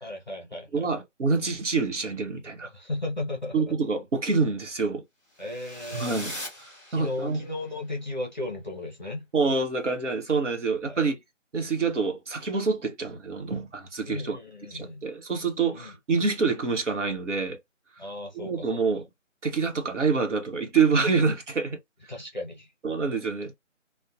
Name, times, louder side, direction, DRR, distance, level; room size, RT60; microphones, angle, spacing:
voice 1, 0.0-0.9 2.6-3.6 5.4-6.2 6.9-9.3 10.8-11.1 14.1-15.0 15.7-15.9 18.0-18.8 22.1-22.7, left 2 dB, 35° left, 0.6 m, -35 dB
voice 2, 0.7-2.7 3.5-5.0 5.9-6.3 6.9-7.4 9.3-11.2 11.5-14.4 14.7-17.6 18.4-19.0 19.4-21.8 22.8-23.5, right 4 dB, 65° right, 1.0 m, -26 dB
sound 1, 5.4-7.5, left 1 dB, 20° right, 1.4 m, -40 dB
2.6 x 2.1 x 2.4 m
figure-of-eight pair, 165°, 38 cm